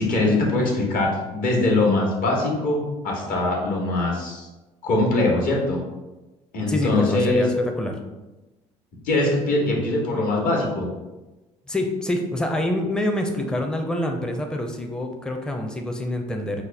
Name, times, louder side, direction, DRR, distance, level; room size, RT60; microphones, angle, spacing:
voice 1, 0.0-4.5 4.8-5.8 6.5-7.4 9.0-10.9, left 2 dB, 60° left, -1 dB, 1.2 m, -22 dB
voice 2, 6.7-8.0 11.7-16.6, left 1 dB, 5° left, 3 dB, 0.5 m, -26 dB
4.1 x 2.1 x 3.3 m, 1.1 s
supercardioid pair, 70°, 16 cm